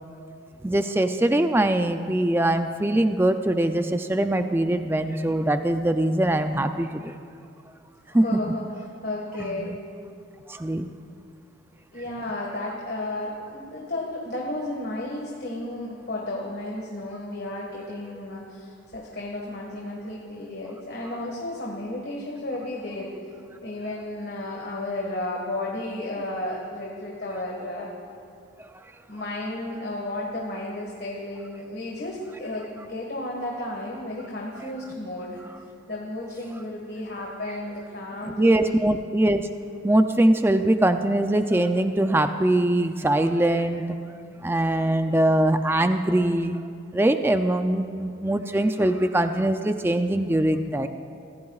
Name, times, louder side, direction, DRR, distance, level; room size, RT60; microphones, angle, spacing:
voice 1, 0.6-7.1 8.1-8.4 9.4-9.8 10.5-10.9 23.8-23.9 34.6-34.7 38.4-39.5 39.8-44.0 44.4-50.9, right 1 dB, 10° right, 8 dB, 0.4 m, -22 dB
voice 2, 8.0-8.6 9.0-9.8 11.9-23.1 23.6-27.9 29.1-35.4 35.9-38.8, left 1 dB, 50° left, -3 dB, 1.7 m, -33 dB
25.0 x 15.5 x 2.4 m, 2.5 s
head